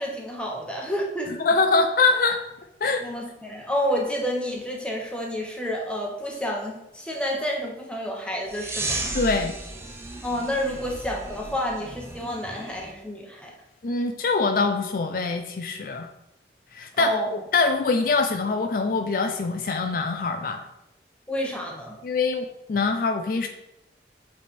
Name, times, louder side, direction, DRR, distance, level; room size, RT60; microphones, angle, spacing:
voice 1, 0.0-1.3 3.0-9.1 10.2-13.5 17.0-17.3 21.3-22.0, equal, 5° left, -1 dB, 1.0 m, -29 dB
voice 2, 1.4-2.4 2.8-3.0 9.1-9.5 13.8-16.1 16.7-17.1 17.5-20.6 22.0-23.5, left 4 dB, 50° left, 6 dB, 0.4 m, -23 dB
sound 1, 8.5-12.9, right 2 dB, 15° right, 0.6 m, -34 dB
8.0 x 3.4 x 4.3 m, 0.87 s
head